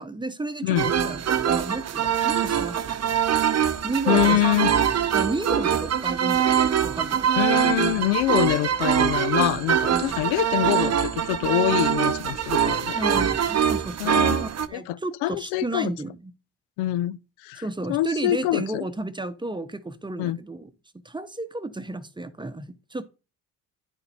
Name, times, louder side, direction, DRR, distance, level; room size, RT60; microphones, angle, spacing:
voice 1, 0.0-3.1 3.8-4.7 5.1-7.4 12.9-16.3 17.6-20.7 21.0-23.0, right 2 dB, 10° right, 0.8 m, -33 dB
sound 1, 0.8-14.7, right 8 dB, 40° right, 0.8 m, -23 dB
voice 2, 4.1-4.7 7.4-13.0 14.0-14.4 14.7-15.9 16.8-17.6 17.9-18.9 20.2-20.4, left 16 dB, 80° left, 0.5 m, -25 dB
9.8 x 4.1 x 4.2 m
hypercardioid pair, 60°, 40 cm